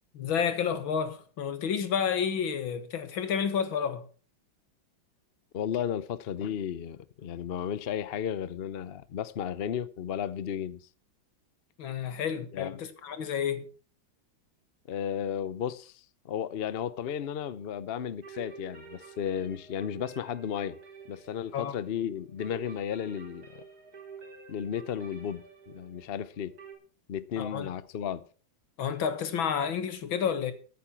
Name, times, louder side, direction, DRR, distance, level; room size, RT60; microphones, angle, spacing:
voice 1, 0.1-4.0 11.8-13.7 21.5-21.7 27.4-27.7 28.8-30.5, left 7 dB, 85° left, 2.3 m, -30 dB
voice 2, 5.5-10.8 12.5-12.8 14.9-20.8 21.1-23.6 24.5-26.5 27.1-28.2, left 9 dB, 65° left, 0.6 m, -34 dB
sound 1, 18.2-26.7, right 6 dB, 50° right, 4.2 m, -49 dB
14.0 x 9.1 x 5.8 m
omnidirectional pair, 2.1 m